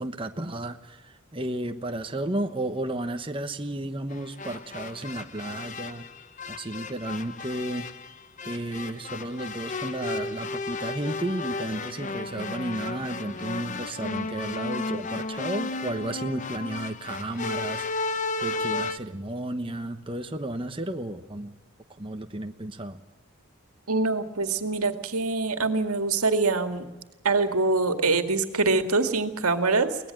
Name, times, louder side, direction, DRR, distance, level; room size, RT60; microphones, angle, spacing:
voice 1, 0.0-6.1 6.5-7.9 8.4-17.8 18.4-21.6 22.0-23.0, right 1 dB, 25° right, 6 dB, 1.1 m, -33 dB
sound 1, 4.1-19.0, left 3 dB, 35° left, 0.8 m, -34 dB
voice 2, 23.9-26.9 27.2-30.0, right 3 dB, 90° right, 8 dB, 2.1 m, -24 dB
24.0 x 18.5 x 7.5 m, 1.1 s
head